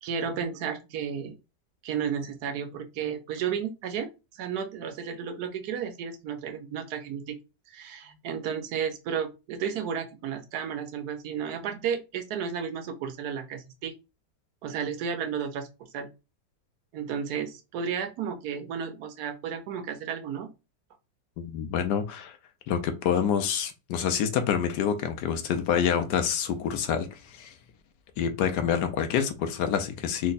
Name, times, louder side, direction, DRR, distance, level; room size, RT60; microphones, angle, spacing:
voice 1, 0.0-1.3 1.8-7.4 7.7-13.9 14.6-15.7 15.9-16.1 16.9-20.5, right 7 dB, 70° right, 1.1 m, -33 dB
voice 2, 21.4-22.4 22.7-27.5 28.2-30.3, left 8 dB, 75° left, 1.2 m, -27 dB
3.5 x 2.2 x 3.9 m
omnidirectional pair, 1.9 m